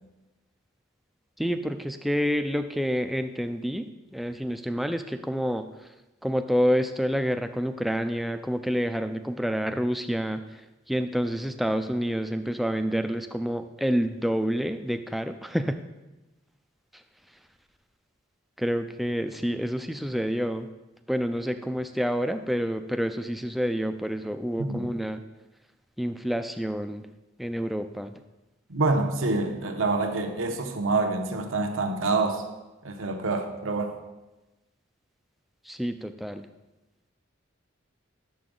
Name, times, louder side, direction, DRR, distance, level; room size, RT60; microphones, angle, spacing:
voice 1, 1.4-5.7 6.2-10.6 10.9-15.8 18.6-20.7 21.1-25.2 26.0-27.1 27.4-28.1 35.6-36.5, equal, ahead, 7 dB, 0.3 m, -28 dB
voice 2, 28.7-32.4 32.8-33.9, right 3 dB, 80° right, 3 dB, 0.9 m, -26 dB
9.3 x 6.9 x 3.8 m, 1.1 s
head